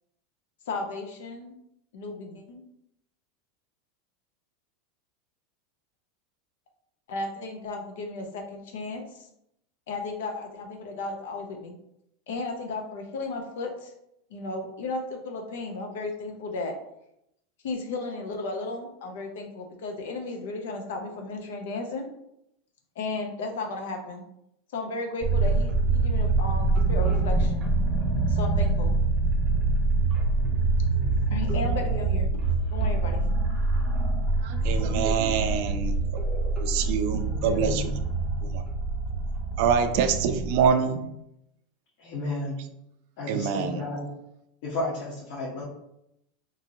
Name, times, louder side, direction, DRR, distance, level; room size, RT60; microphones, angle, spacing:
voice 1, 0.7-1.6 1.9-2.6 7.1-9.3 9.9-11.7 12.3-13.9 14.3-16.7 17.6-22.1 23.0-24.2 24.7-27.7 28.3-29.0 31.3-32.3 32.7-33.2, left 3 dB, 85° left, 3 dB, 0.5 m, -34 dB
sound 1, 25.2-40.7, right 3 dB, 20° right, 0.6 m, -25 dB
voice 2, 34.4-36.2 36.6-37.9 38.4-38.6 39.6-41.1 43.3-43.8, right 7 dB, 55° right, 8 dB, 0.3 m, -25 dB
voice 3, 37.3-37.9 42.0-42.6 43.2-44.1 44.6-45.6, left 2 dB, 60° left, -7 dB, 0.9 m, -33 dB
2.9 x 2.6 x 2.6 m, 0.80 s
supercardioid pair, 155°, 0 cm